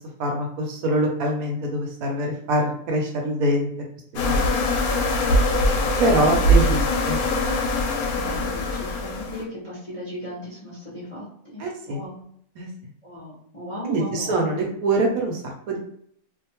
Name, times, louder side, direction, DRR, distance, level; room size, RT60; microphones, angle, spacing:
voice 1, 0.2-3.7 4.1-4.4 6.0-7.2 11.6-12.0 12.6-12.7 13.9-15.8, right 1 dB, 70° right, 0 dB, 1.0 m, -24 dB
sound 1, 4.2-9.4, left 1 dB, 70° left, 1.0 m, -22 dB
voice 2, 8.1-11.3 11.5-12.2 13.0-14.4, left 1 dB, 30° left, -7 dB, 0.6 m, -37 dB
2.6 x 2.1 x 2.8 m, 0.65 s
omnidirectional pair, 1.7 m